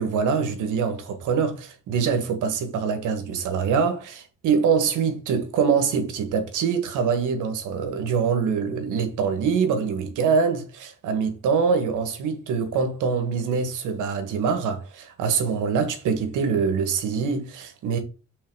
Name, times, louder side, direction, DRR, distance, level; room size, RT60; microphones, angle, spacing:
voice 1, 0.0-18.0, right 6 dB, 85° right, 1.6 m, -24 dB
5.7 x 4.1 x 4.7 m
cardioid pair, 90°, 30 cm